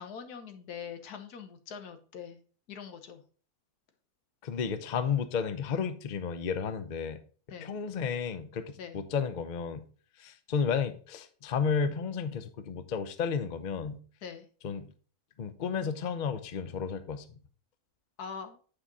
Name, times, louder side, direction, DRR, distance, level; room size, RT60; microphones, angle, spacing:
voice 1, 0.0-2.4 2.7-3.2 7.5-7.7 8.8-9.0 14.2-14.5 18.2-18.6, left 7 dB, 85° left, 8 dB, 1.5 m, -43 dB
voice 2, 4.4-7.2 7.6-9.8 10.2-14.0 14.6-14.9 15.4-17.2, left 6 dB, 50° left, 10 dB, 0.6 m, -32 dB
8.7 x 4.9 x 4.1 m, 0.41 s
omnidirectional pair, 1.6 m